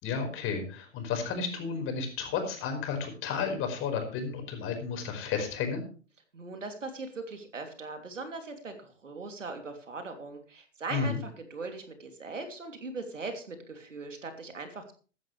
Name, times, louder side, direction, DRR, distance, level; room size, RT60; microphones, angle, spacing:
voice 1, 0.0-5.8 10.9-11.2, left 5 dB, 35° left, 5 dB, 5.0 m, -32 dB
voice 2, 6.3-14.9, right 3 dB, 90° right, 5 dB, 3.1 m, -40 dB
15.5 x 12.5 x 3.3 m, 0.37 s
hypercardioid pair, 110°, 36 cm